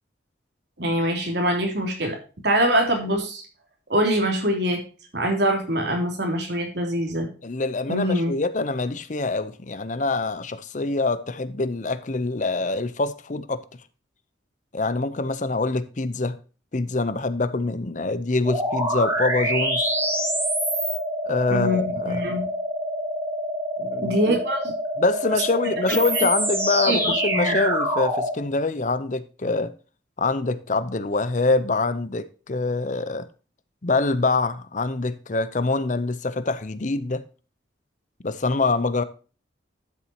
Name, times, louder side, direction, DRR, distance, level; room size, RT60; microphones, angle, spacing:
voice 1, 0.8-2.2 2.4-3.4 3.9-4.8 5.1-7.3 7.9-8.3 21.5-22.5 24.0-24.7 25.9-26.3 26.9-27.5, equal, 65° right, 3.2 m, -24 dB
voice 2, 7.4-13.6 14.7-16.4 16.7-19.9 21.2-22.3 23.8-24.2 25.0-29.7 30.2-33.3 33.8-37.2 38.2-39.0, left 3 dB, 40° left, 0.6 m, -25 dB
sound 1, 18.5-28.4, equal, 15° right, 2.2 m, -26 dB
12.5 x 7.4 x 2.9 m
head